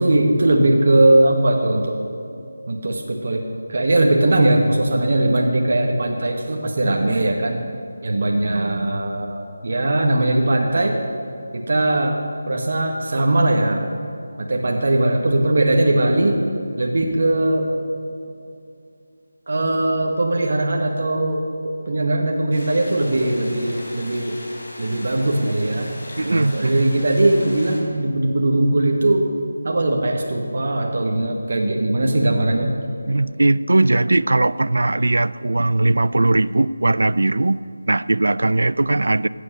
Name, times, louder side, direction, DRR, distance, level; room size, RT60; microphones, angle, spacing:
voice 1, 0.0-2.0 2.7-3.4 3.7-7.6 8.0-11.0 11.7-12.2 12.5-13.8 14.5-16.4 16.8-17.7 19.5-21.4 21.9-24.4 24.8-25.9 26.3-29.3 29.6-32.8, right 1 dB, 55° right, 1 dB, 1.4 m, -19 dB
sound 1, 22.5-27.8, left 1 dB, 60° left, 3.6 m, -39 dB
voice 2, 26.2-26.9 33.1-37.6 37.9-39.3, right 2 dB, 80° right, 18 dB, 0.4 m, -19 dB
15.0 x 8.4 x 6.5 m, 2.5 s
figure-of-eight pair, 170°, 0 cm